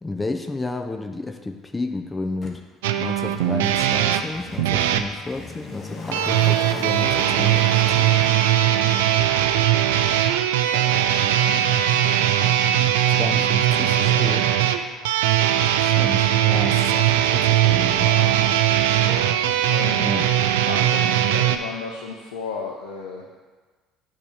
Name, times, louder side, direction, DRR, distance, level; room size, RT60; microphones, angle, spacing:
voice 1, 0.0-2.6 3.0-8.1 13.2-14.4 15.5-18.1 20.0-20.3, left 3 dB, 20° left, 5 dB, 0.5 m, -32 dB
Motor vehicle (road), 2.4-2.5 3.3-16.2 16.5-16.6, left 3 dB, 40° left, 1.0 m, -40 dB
sound 1, 2.8-5.1 6.1-21.6, right 11 dB, 80° right, 0.3 m, -20 dB
voice 2, 10.6-12.2 14.0-14.3 17.9-18.6 19.4-23.3, left 5 dB, 80° left, -1 dB, 0.6 m, -35 dB
8.4 x 2.8 x 5.0 m, 1.4 s
hypercardioid pair, 65°, 0 cm